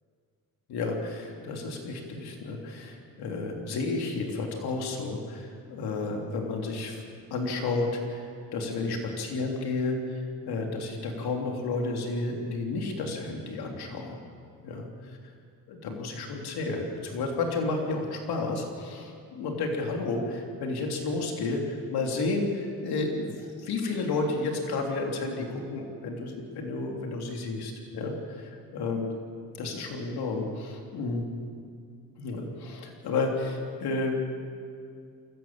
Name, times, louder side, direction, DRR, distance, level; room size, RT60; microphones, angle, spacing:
voice 1, 0.7-7.0 7.3-14.1 14.6-14.9 15.7-29.1 29.6-31.2 32.2-34.1, left 3 dB, 85° left, 1 dB, 3.3 m, -31 dB
23.5 x 15.0 x 8.9 m, 2.3 s
cardioid pair, 75°, 37 cm